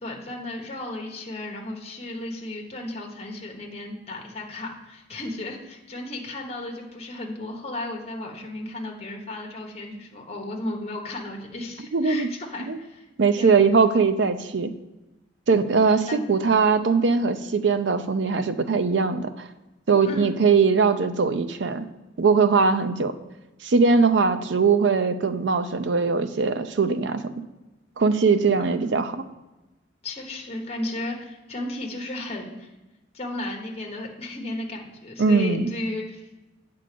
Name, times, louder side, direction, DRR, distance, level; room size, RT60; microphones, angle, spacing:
voice 1, 0.0-13.1 13.4-13.6 15.8-16.2 20.1-20.3 30.0-32.7 33.1-36.2, left 1 dB, 35° left, 1 dB, 1.1 m, -34 dB
voice 2, 11.9-12.3 12.6-12.8 13.2-14.7 15.5-19.5 19.9-21.9 22.2-23.1 23.6-27.2 28.0-29.3 35.2-35.7, right 4 dB, 65° right, 10 dB, 0.5 m, -21 dB
8.6 x 3.8 x 6.7 m, 1.0 s
head